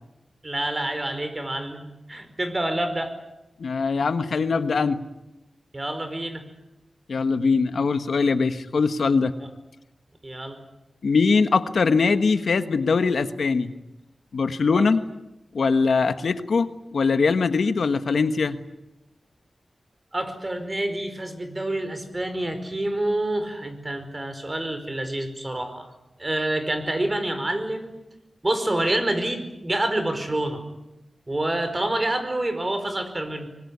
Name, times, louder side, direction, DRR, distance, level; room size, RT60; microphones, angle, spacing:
voice 1, 0.4-1.8 2.1-3.1 5.7-6.4 9.4-9.5 10.2-10.6 14.7-14.8 20.1-25.9 26.2-27.9 28.4-30.6 31.3-33.5, right 1 dB, 25° right, 8 dB, 4.9 m, -27 dB
voice 2, 3.6-5.0 7.1-9.3 11.0-13.7 14.3-15.0 15.5-18.6, left 4 dB, 80° left, 10 dB, 1.4 m, -22 dB
24.5 x 21.5 x 9.7 m, 0.93 s
wide cardioid pair, 85°, 0 cm